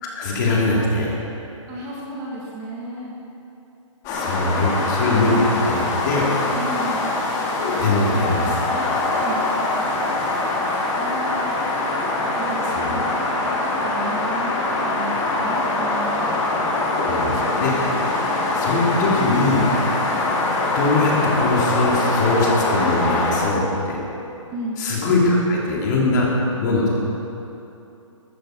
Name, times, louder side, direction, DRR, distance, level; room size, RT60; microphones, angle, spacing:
voice 1, 0.0-1.2 4.1-6.3 7.6-8.6 12.7-13.0 16.9-17.9 18.5-19.7 20.7-24.0 24.8-26.3 26.6-27.0, left 2 dB, 35° left, -3 dB, 3.3 m, -21 dB
voice 2, 1.7-3.1 6.5-7.2 8.7-10.1 11.0-11.6 12.3-13.1 13.4-16.3 24.5-24.8, right 1 dB, 20° right, -3 dB, 1.6 m, -33 dB
sound 1, 4.0-23.4, left 2 dB, 20° left, 2.2 m, -23 dB
14.5 x 13.5 x 5.3 m, 2.8 s
hypercardioid pair, 160°, 17 cm